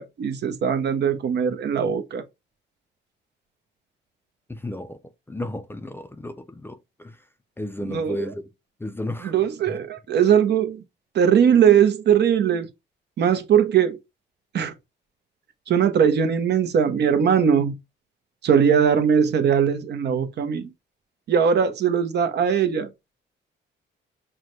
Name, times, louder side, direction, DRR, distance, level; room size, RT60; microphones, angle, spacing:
voice 1, 0.0-2.2 7.8-8.3 9.2-10.8 11.1-12.7 13.2-14.0 14.5-14.7 15.7-17.7 18.4-20.7 21.3-22.9, right 8 dB, 60° right, 0.7 m, -20 dB
voice 2, 4.5-5.0 5.3-7.2 7.6-8.4 8.8-9.3 9.7-9.8, left 1 dB, 10° left, 0.4 m, -33 dB
5.9 x 2.1 x 3.1 m
cardioid pair, 90°, 20 cm